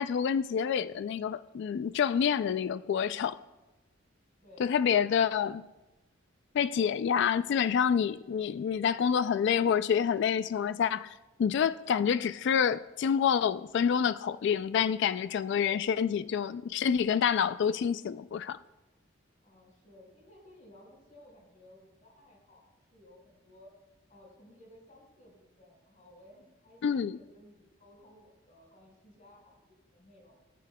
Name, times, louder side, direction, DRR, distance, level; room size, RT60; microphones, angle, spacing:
voice 1, 0.0-3.4 4.6-5.6 6.5-18.6 26.8-27.2, left 7 dB, 60° left, 0.3 m, -28 dB
voice 2, 4.4-4.9 8.2-8.5 15.5-15.9 19.4-22.6 22.9-23.7 24.1-30.4, left 1 dB, 40° left, 4.6 m, -57 dB
18.5 x 14.0 x 2.2 m
head